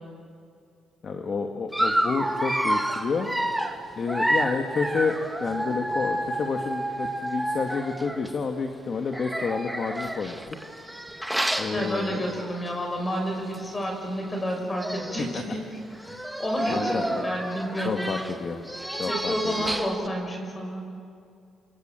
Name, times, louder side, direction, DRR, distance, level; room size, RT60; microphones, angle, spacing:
voice 1, 1.0-3.3 4.0-10.6 11.6-12.3 14.5-14.6 15.3-15.4 16.0-16.3 16.7-17.2 17.8-18.6 18.9-19.7, left 5 dB, 50° left, 4 dB, 2.0 m, -30 dB
Dog, 1.7-8.3 9.1-12.7 13.1-13.3 13.5-13.6 14.5-14.6 14.8-15.3 16.0-20.1, right 1 dB, 5° right, 1.9 m, -29 dB
voice 2, 11.7-15.7 16.4-18.1 19.1-20.9, equal, 25° left, 2 dB, 6.6 m, -30 dB
27.5 x 26.0 x 7.8 m, 2.4 s
cardioid pair, 90°, 0 cm